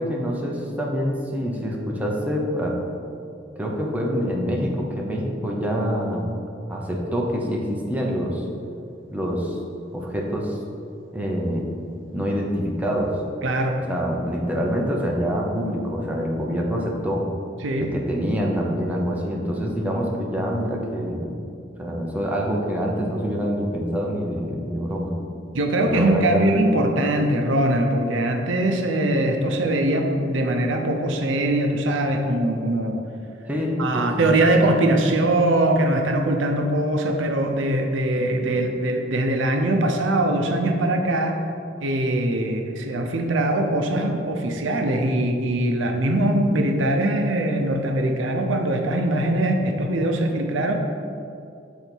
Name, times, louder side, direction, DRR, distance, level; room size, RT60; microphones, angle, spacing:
voice 1, 0.0-2.7 3.6-6.3 6.7-8.4 9.1-9.6 9.9-10.6 11.1-11.7 12.1-13.1 13.9-17.2 17.7-21.4 21.8-25.1 25.9-26.5 33.5-34.4, equal, 10° right, -2 dB, 0.7 m, -26 dB
voice 2, 13.4-13.8 17.6-17.9 25.5-33.0 33.8-41.4 41.8-50.8, right 1 dB, 70° right, 3 dB, 0.6 m, -22 dB
7.0 x 4.0 x 4.5 m, 2.5 s
head